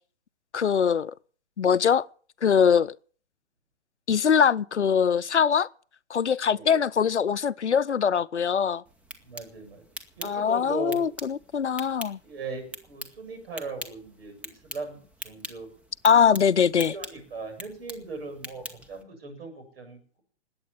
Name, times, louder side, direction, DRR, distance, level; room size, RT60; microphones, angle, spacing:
voice 1, 0.5-1.1 1.6-2.0 2.4-2.9 4.1-5.7 6.1-8.8 10.2-12.2 16.0-16.9, left 7 dB, 75° left, 0.7 m, -22 dB
voice 2, 6.4-6.8 9.2-9.8 10.2-11.0 12.2-15.7 16.9-20.2, right 3 dB, 55° right, 7.9 m, -39 dB
sound 1, 8.8-19.0, equal, 5° right, 1.4 m, -44 dB
20.0 x 8.7 x 7.1 m
figure-of-eight pair, 120°, 35 cm